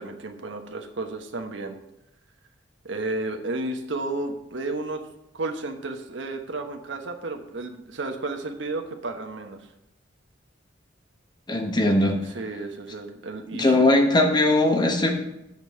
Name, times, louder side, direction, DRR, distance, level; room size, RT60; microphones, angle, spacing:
voice 1, 0.0-1.8 2.8-5.0 5.3-9.6 12.3-13.9, right 2 dB, 75° right, 4 dB, 1.1 m, -32 dB
voice 2, 11.5-12.2 13.5-15.2, left 1 dB, 25° left, 3 dB, 1.2 m, -20 dB
8.1 x 5.2 x 7.7 m, 0.89 s
head